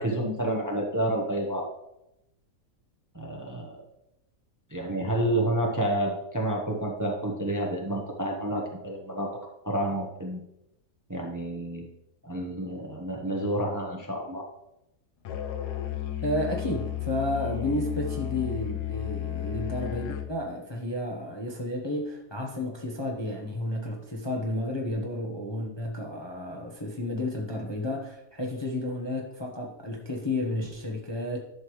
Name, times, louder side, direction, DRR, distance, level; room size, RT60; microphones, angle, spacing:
voice 1, 0.0-1.7 3.1-3.8 4.7-9.3 9.6-10.4 11.1-11.9 12.2-14.5, right 1 dB, 15° right, 0 dB, 0.9 m, -29 dB
Musical instrument, 15.2-20.4, left 12 dB, 75° left, 1.3 m, -33 dB
voice 2, 16.2-31.4, left 1 dB, 20° left, -1 dB, 0.9 m, -32 dB
11.5 x 6.6 x 3.2 m, 0.86 s
omnidirectional pair, 1.8 m